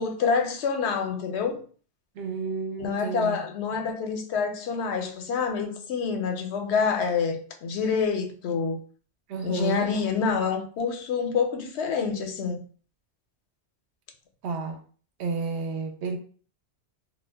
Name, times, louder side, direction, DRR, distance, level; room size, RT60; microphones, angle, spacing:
voice 1, 0.0-1.6 2.8-8.8 9.4-12.6, left 5 dB, 75° left, 0.8 m, -27 dB
voice 2, 2.1-3.4 9.3-9.9 14.4-14.8 15.2-16.2, right 4 dB, 75° right, 0.8 m, -31 dB
2.2 x 2.1 x 3.2 m
omnidirectional pair, 1.2 m